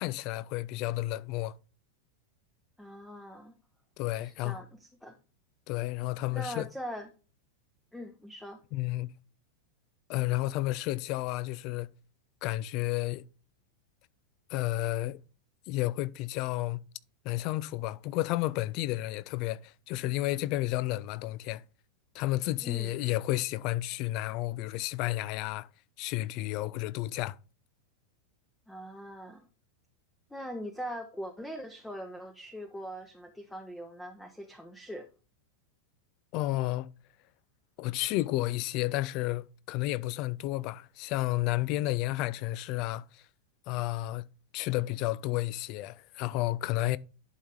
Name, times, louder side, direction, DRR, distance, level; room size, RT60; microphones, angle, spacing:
voice 1, 0.0-1.5 4.0-4.6 5.7-6.7 8.7-9.1 10.1-11.9 12.4-13.2 14.5-15.2 15.7-16.8 17.2-21.6 22.1-25.7 26.0-27.4 36.3-36.9 37.8-43.2 43.7-44.2 44.5-47.0, left 17 dB, 40° left, 0.4 m, -31 dB
voice 2, 2.8-3.5 4.2-5.2 6.3-7.1 7.9-8.6 22.6-22.9 28.7-29.5 30.3-35.1, equal, 5° left, 0.9 m, -41 dB
11.0 x 4.3 x 3.5 m
figure-of-eight pair, 90°, 0 cm